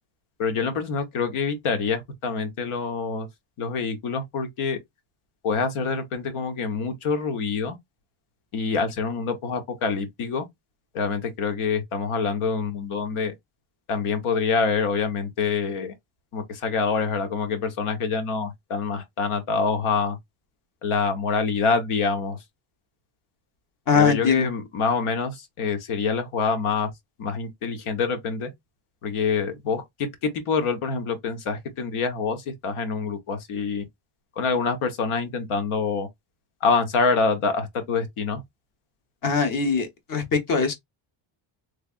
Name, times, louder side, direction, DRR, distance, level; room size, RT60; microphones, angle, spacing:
voice 1, 0.4-3.3 3.6-4.8 5.4-7.8 8.5-10.5 10.9-13.3 13.9-15.9 16.3-20.2 20.8-22.4 23.9-26.9 27.2-28.5 29.0-33.8 34.4-36.1 36.6-38.4, left 5 dB, 90° left, 1.3 m, -26 dB
voice 2, 23.9-24.5 39.2-40.7, left 5 dB, 40° left, 1.1 m, -22 dB
3.4 x 3.3 x 2.4 m
cardioid pair, 175°, 48 cm